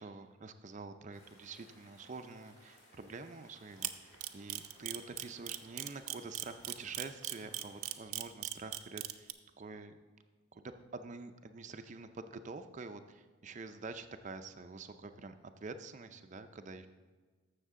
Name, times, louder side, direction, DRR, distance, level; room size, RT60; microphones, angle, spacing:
voice 1, 0.0-9.3 9.6-10.0 10.5-16.9, right 3 dB, 35° right, 9 dB, 0.4 m, -47 dB
sound 1, 1.1-7.9, left 1 dB, 45° left, 2.7 m, -63 dB
Camera, 3.8-9.3, right 15 dB, 85° right, 0.5 m, -38 dB
13.5 x 6.5 x 3.6 m, 1.4 s
head